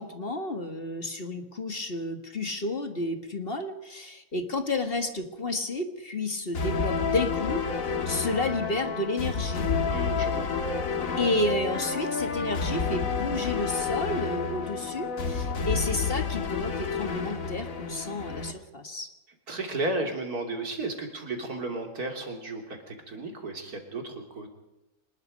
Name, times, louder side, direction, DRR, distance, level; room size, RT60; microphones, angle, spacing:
voice 1, 0.0-9.7 11.2-19.1, left 2 dB, 40° left, 6 dB, 1.9 m, -31 dB
sound 1, 6.5-18.5, left 5 dB, 65° left, 1.9 m, -30 dB
voice 2, 9.9-10.5 19.5-24.5, right 2 dB, 85° right, 3 dB, 3.6 m, -33 dB
24.5 x 20.5 x 5.3 m, 0.97 s
omnidirectional pair, 1.6 m